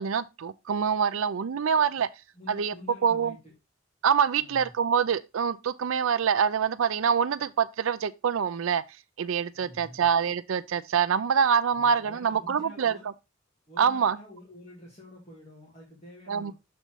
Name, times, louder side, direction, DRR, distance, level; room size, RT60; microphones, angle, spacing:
voice 1, 0.0-2.1 2.5-2.7 3.0-3.3 4.0-8.8 9.2-12.9 13.8-14.2 16.3-16.5, right 7 dB, 80° right, 0.4 m, -25 dB
voice 2, 2.3-3.5 4.4-4.7 9.5-10.1 11.7-13.1 13.7-16.5, equal, 30° left, 2.0 m, -48 dB
6.9 x 4.3 x 4.5 m
head